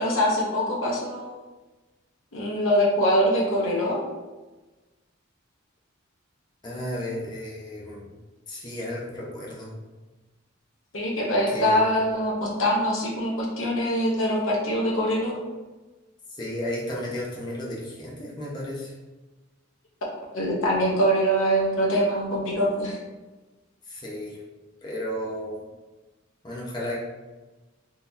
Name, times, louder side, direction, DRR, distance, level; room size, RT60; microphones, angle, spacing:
voice 1, 0.0-1.3 2.3-4.0 10.9-15.4 20.3-23.0, equal, 80° left, -3 dB, 0.8 m, -23 dB
voice 2, 6.6-8.1 8.5-9.7 11.5-11.8 16.3-18.9 23.9-24.4 24.8-25.7 26.4-27.0, left 1 dB, 20° left, -5 dB, 0.7 m, -33 dB
3.8 x 2.9 x 2.6 m, 1.2 s
head